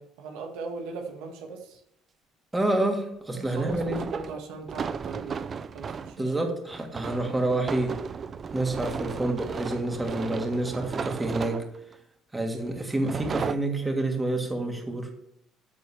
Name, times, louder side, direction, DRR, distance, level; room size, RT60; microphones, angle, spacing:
voice 1, 0.0-1.8 3.3-6.5 8.7-8.9, right 4 dB, 80° right, 2 dB, 2.0 m, -39 dB
voice 2, 2.5-4.0 6.2-8.0 8.5-11.6 12.3-15.1, right 2 dB, 15° right, 2 dB, 2.6 m, -28 dB
sound 1, 3.6-6.2 6.7-11.9 12.8-13.6, right 6 dB, 40° right, 0.6 m, -35 dB
13.5 x 4.6 x 7.2 m, 0.75 s
cardioid pair, 95°, 0 cm